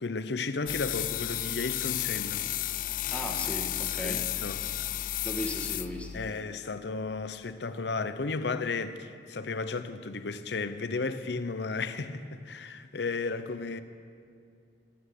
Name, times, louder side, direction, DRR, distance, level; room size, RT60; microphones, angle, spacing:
voice 1, 0.0-2.5 4.0-4.7 6.1-13.8, left 4 dB, 70° left, 0.7 m, -34 dB
sound 1, 0.7-6.3, left 14 dB, 50° left, 0.3 m, -33 dB
voice 2, 3.1-4.2 5.2-6.1, equal, 5° left, 1.5 m, -36 dB
12.5 x 8.9 x 9.2 m
head